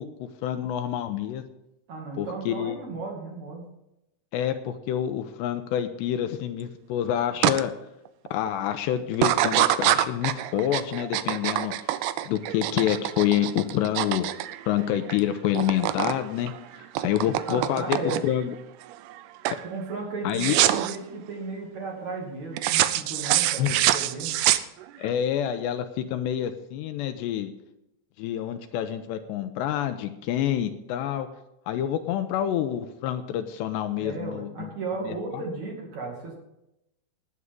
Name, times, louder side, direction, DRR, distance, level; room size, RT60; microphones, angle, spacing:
voice 1, 0.0-1.4 2.2-2.8 4.3-7.7 8.3-11.7 12.3-14.3 14.7-18.5 20.2-20.6 23.6-23.8 25.0-27.5 28.2-31.3 31.7-34.7 35.1-35.4, left 11 dB, 80° left, 8 dB, 2.8 m, -27 dB
voice 2, 1.9-3.6 17.5-18.2 19.6-24.4 34.0-36.4, right 3 dB, 45° right, -1 dB, 3.1 m, -35 dB
sound 1, 7.4-7.6 8.1-8.5 9.1-15.2 15.4-16.2 16.5-18.4 18.9-19.2 19.4-19.7 20.3-21.0 22.6-25.1, right 14 dB, 90° right, 2.2 m, -25 dB
19.0 x 9.7 x 3.7 m, 0.86 s
omnidirectional pair, 5.3 m